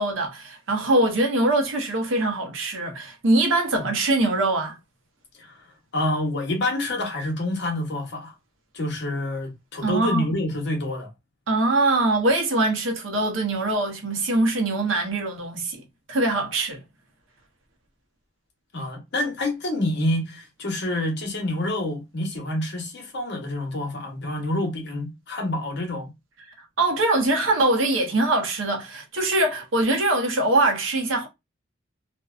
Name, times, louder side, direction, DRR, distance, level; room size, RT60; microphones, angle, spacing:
voice 1, 0.0-4.8 9.8-10.3 11.5-15.8 16.1-16.8 26.8-31.3, right 2 dB, 75° right, 0.8 m, -23 dB
voice 2, 5.3-8.3 8.7-11.1 18.7-26.1, left 1 dB, 60° left, 0.9 m, -27 dB
2.5 x 2.2 x 2.3 m
head